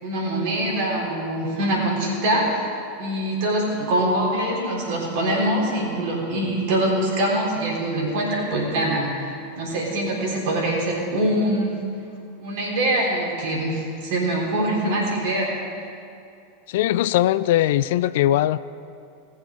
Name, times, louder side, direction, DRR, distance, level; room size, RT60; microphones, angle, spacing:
voice 1, 0.0-2.7 3.0-11.7 12.4-15.5, right 1 dB, 55° right, -3 dB, 3.7 m, -24 dB
voice 2, 16.7-18.6, left 13 dB, 60° left, 16 dB, 0.3 m, -20 dB
18.5 x 7.3 x 5.0 m, 2.5 s
figure-of-eight pair, 85°, 0 cm